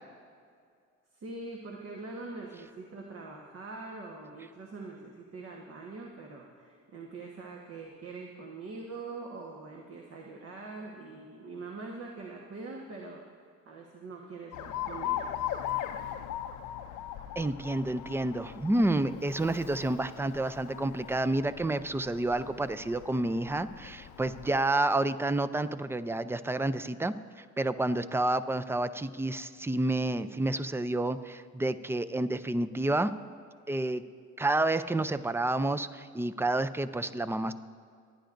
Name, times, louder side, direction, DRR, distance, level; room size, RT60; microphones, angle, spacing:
voice 1, 1.1-13.2 13.7-15.3, right 3 dB, 50° right, -1 dB, 1.3 m, -43 dB
Alarm, 14.5-24.6, left 11 dB, 85° left, 0.6 m, -39 dB
voice 2, 17.4-33.1 33.7-34.0 34.4-37.5, right 2 dB, 10° right, 12 dB, 0.4 m, -29 dB
26.5 x 10.5 x 2.6 m, 2.2 s
cardioid pair, 90°, 30 cm